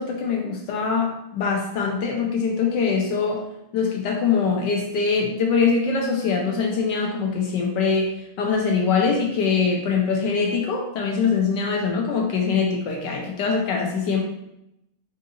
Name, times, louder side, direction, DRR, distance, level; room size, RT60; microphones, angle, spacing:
voice 1, 0.0-3.5 3.7-14.2, left 5 dB, 70° left, 0 dB, 1.1 m, -23 dB
4.1 x 3.7 x 2.5 m, 0.84 s
omnidirectional pair, 2.2 m